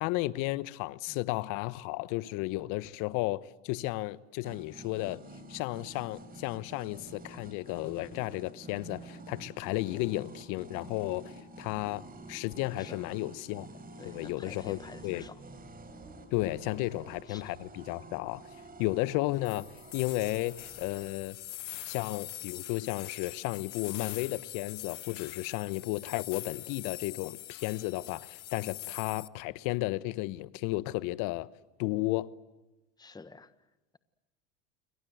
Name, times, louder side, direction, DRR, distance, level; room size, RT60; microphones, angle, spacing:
voice 1, 0.0-5.2 5.5-11.3 11.6-12.0 12.3-13.7 14.0-15.2 16.3-18.5 18.8-19.7 19.9-21.4 21.8-31.5 31.8-32.3, left 19 dB, 60° left, 1.1 m, -33 dB
sound 1, 4.4-21.3, right 2 dB, 25° right, 4.1 m, -49 dB
voice 2, 14.0-15.4 16.8-16.9 17.3-17.4 33.0-33.5, left 4 dB, 10° left, 1.3 m, -49 dB
sound 2, 19.5-29.3, left 16 dB, 85° left, 0.9 m, -43 dB
29.0 x 24.0 x 7.9 m
hypercardioid pair, 95°, 35 cm